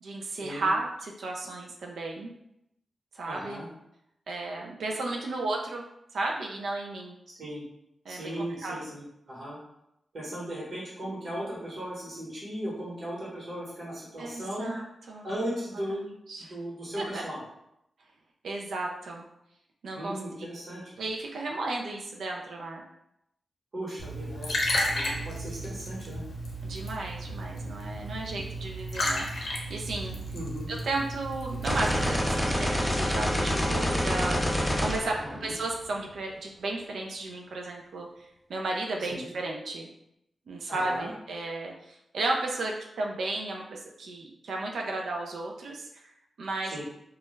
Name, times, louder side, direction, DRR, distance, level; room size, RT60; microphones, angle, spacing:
voice 1, 0.0-2.3 3.1-3.6 4.3-5.8 6.1-7.2 8.1-8.8 14.2-15.3 15.9-16.5 17.0-17.2 18.4-19.2 19.8-20.2 21.0-22.8 26.6-30.2 30.7-34.4 34.8-39.9 40.5-46.7, right 2 dB, 85° right, 0 dB, 0.3 m, -34 dB
voice 2, 3.3-3.7 7.3-7.7 8.1-9.6 10.1-14.7 15.2-16.0 16.4-17.4 19.9-20.8 23.7-24.6 24.8-26.2 30.3-30.7 35.3-35.5 39.1-39.3 40.7-41.1 46.7-46.8, equal, 55° right, -5 dB, 1.1 m, -37 dB
Liquid, 24.0-32.1, equal, 70° left, 0.6 m, -33 dB
sound 1, 31.6-35.8, equal, 5° left, 0.4 m, -27 dB
2.2 x 2.0 x 3.0 m, 0.81 s
wide cardioid pair, 105°, 0 cm